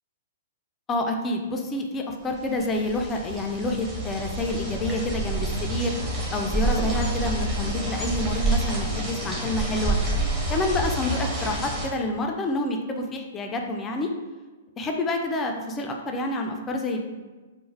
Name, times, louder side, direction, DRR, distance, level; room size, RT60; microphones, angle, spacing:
voice 1, 0.9-6.0 6.3-10.0 10.5-14.1 14.8-17.0, left 2 dB, 20° left, 2 dB, 0.3 m, -28 dB
Rain Fall Through Trees, 2.4-11.9, right 2 dB, 15° right, 0.7 m, -28 dB
2.9 x 2.0 x 2.7 m, 1.3 s
hypercardioid pair, 125°, 0 cm